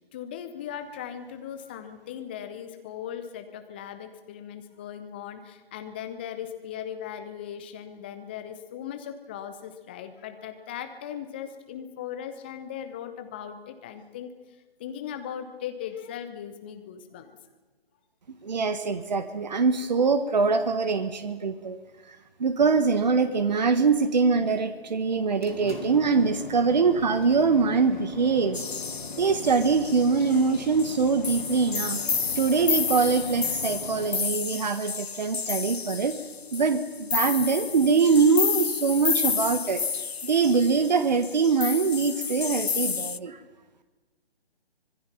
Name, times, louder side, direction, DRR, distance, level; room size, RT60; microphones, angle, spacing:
voice 1, 0.1-14.3 14.8-17.4, left 9 dB, 10° left, 8 dB, 0.8 m, -38 dB
voice 2, 18.4-21.8 22.4-28.6 29.2-32.0 32.4-36.2 36.5-39.8 40.2-43.4, right 4 dB, 45° right, 10 dB, 1.5 m, -23 dB
sound 1, 25.2-34.1, left 3 dB, 50° left, 3.1 m, -40 dB
sound 2, 28.5-43.2, left 5 dB, 80° left, 0.7 m, -31 dB
25.5 x 20.0 x 5.8 m, 1.3 s
figure-of-eight pair, 145°, 31 cm